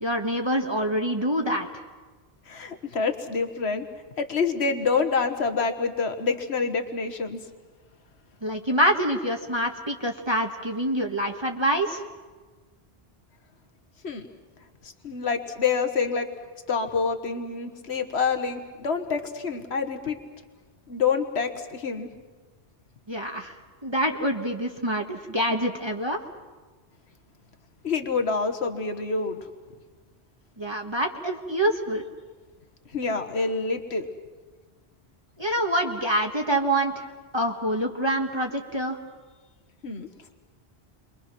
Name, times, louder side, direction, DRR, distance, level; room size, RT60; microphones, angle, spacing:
voice 1, 0.0-1.8 8.4-12.0 23.1-23.6 23.8-26.2 30.6-32.1 35.4-37.1 37.3-39.0, right 1 dB, 25° right, 1 dB, 1.6 m, -26 dB
voice 2, 2.5-3.9 4.2-7.4 14.0-14.3 14.8-16.3 16.7-20.2 20.9-22.1 27.8-29.5 32.9-34.1 39.8-40.1, left 5 dB, 85° left, 6 dB, 1.8 m, -27 dB
29.0 x 23.5 x 6.2 m, 1.4 s
omnidirectional pair, 1.1 m